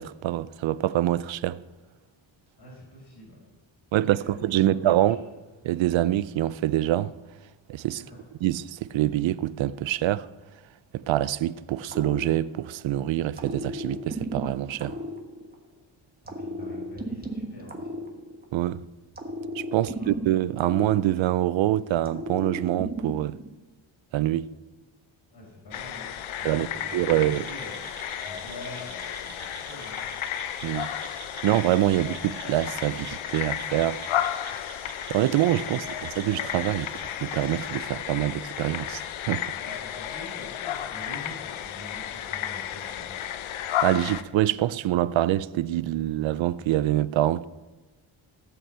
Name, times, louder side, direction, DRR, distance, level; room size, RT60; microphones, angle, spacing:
voice 1, 0.0-1.6 3.9-5.2 5.6-7.1 7.7-8.0 8.4-10.3 10.9-15.0 18.5-18.8 19.5-23.4 24.1-24.5 26.4-26.7 26.9-27.4 30.6-34.0 35.1-36.9 37.2-39.4 43.8-47.5, right 13 dB, 75° right, 0.6 m, -25 dB
voice 2, 2.6-3.4 4.1-5.2 8.0-8.2 16.2-18.1 20.0-20.2 25.3-27.8 28.2-30.1 36.0-36.1 39.5-43.2, left 1 dB, 55° left, 5.0 m, -45 dB
sound 1, 11.9-12.9 13.4-15.8 16.3-18.7 19.2-21.6 22.0-23.5, equal, 20° right, 1.4 m, -35 dB
sound 2, 25.7-44.2, left 10 dB, 90° left, 0.8 m, -33 dB
sound 3, 27.3-37.8, right 6 dB, 55° right, 1.6 m, -47 dB
17.0 x 5.9 x 7.4 m
wide cardioid pair, 150°, 47 cm